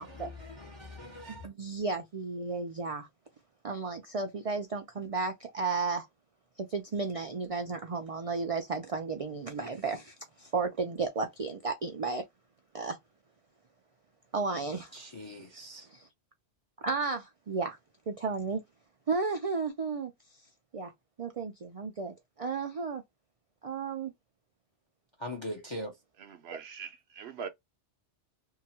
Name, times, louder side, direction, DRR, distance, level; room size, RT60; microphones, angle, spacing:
voice 1, 0.0-1.5 14.9-15.9 25.2-26.0, left 1 dB, 30° left, 0.6 m, -41 dB
voice 2, 1.4-3.1 3.6-6.1 6.6-12.2 12.7-13.0 14.3-15.0 15.9-16.1 16.8-17.8 18.1-18.6 19.1-20.1 20.7-20.9 21.2-23.0 23.6-24.1, right 4 dB, 55° right, 0.4 m, -33 dB
voice 3, 26.2-27.5, right 6 dB, 70° right, 0.9 m, -42 dB
2.8 x 2.2 x 2.8 m
omnidirectional pair, 1.2 m